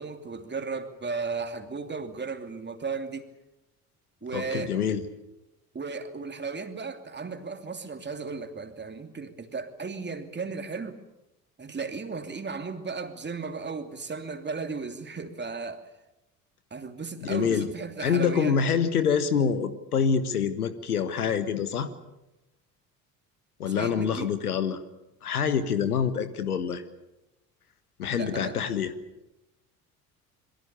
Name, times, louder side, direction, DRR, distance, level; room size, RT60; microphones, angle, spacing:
voice 1, 0.0-3.2 4.2-4.8 5.7-11.0 11.6-15.8 16.7-18.7 23.7-24.3 28.1-28.6, right 4 dB, 25° right, 6 dB, 2.9 m, -35 dB
voice 2, 4.3-5.0 17.2-17.7 18.0-21.9 23.6-24.8 25.2-26.8 28.0-28.9, left 7 dB, 80° left, 12 dB, 1.5 m, -26 dB
27.0 x 22.0 x 6.9 m, 0.96 s
figure-of-eight pair, 55°, 44 cm